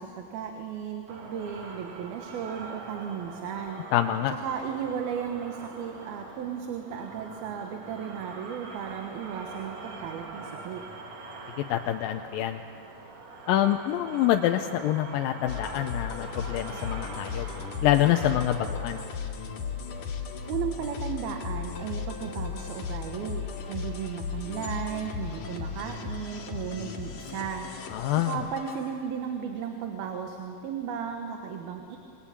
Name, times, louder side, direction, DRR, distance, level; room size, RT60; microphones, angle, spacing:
voice 1, 0.0-3.9 4.4-10.8 20.5-32.0, right 7 dB, 80° right, 4 dB, 3.2 m, -35 dB
sound 1, 1.1-19.1, right 3 dB, 55° right, 2.7 m, -44 dB
voice 2, 3.9-4.3 11.6-12.6 13.5-17.5 17.8-19.0 27.9-28.4, left 12 dB, 75° left, 5 dB, 2.3 m, -26 dB
sound 2, 15.5-29.4, left 6 dB, 60° left, 3.3 m, -36 dB
26.5 x 22.0 x 8.7 m, 2.5 s
omnidirectional pair, 4.3 m